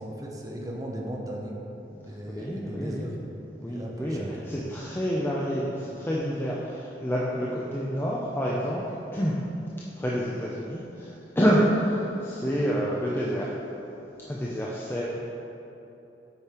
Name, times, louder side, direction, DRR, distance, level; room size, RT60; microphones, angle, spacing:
voice 1, 0.0-1.5 1.9-3.2 3.7-4.4, equal, 20° right, -1 dB, 0.8 m, -37 dB
voice 2, 2.4-3.1 3.6-9.4 9.9-13.5 14.2-15.1, equal, 15° left, -5 dB, 0.6 m, -28 dB
8.1 x 5.3 x 4.4 m, 3.0 s
head